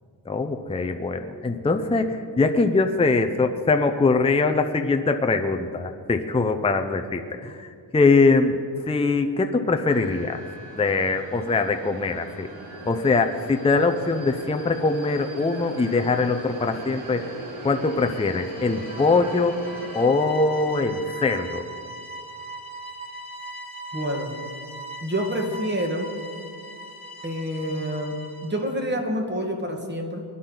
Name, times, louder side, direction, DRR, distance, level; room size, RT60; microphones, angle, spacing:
voice 1, 0.3-8.6 8.9-10.4 10.8-12.5 12.9-17.2 17.6-19.6 19.9-21.7, left 3 dB, 15° left, 6 dB, 0.5 m, -22 dB
sound 1, 9.9-20.1, right 1 dB, 75° right, 2.8 m, -40 dB
sound 2, 18.0-28.7, right 1 dB, 30° left, 1.8 m, -40 dB
voice 2, 23.9-24.4 25.0-26.1 27.2-28.1 28.4-30.2, equal, 20° right, 2 dB, 1.7 m, -27 dB
21.0 x 11.0 x 3.9 m, 2.3 s
wide cardioid pair, 135°, 48 cm